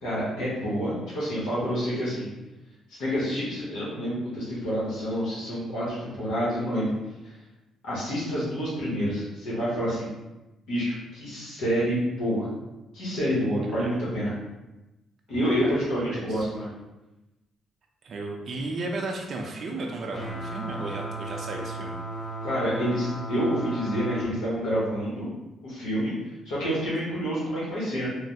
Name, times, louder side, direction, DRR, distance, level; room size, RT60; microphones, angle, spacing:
voice 1, 0.0-2.3 3.0-6.9 7.8-10.1 10.7-12.5 12.9-14.3 15.3-16.7 22.4-25.3 25.6-26.1 26.4-28.1, equal, 90° left, -8 dB, 1.0 m, -28 dB
voice 2, 13.7-14.0 15.4-16.4 18.0-22.0, right 2 dB, 55° right, 0 dB, 0.4 m, -34 dB
sound 1, 20.1-24.3, right 2 dB, 50° left, 0.8 m, -35 dB
3.1 x 2.1 x 2.7 m, 1.0 s
cardioid pair, 90°, 0 cm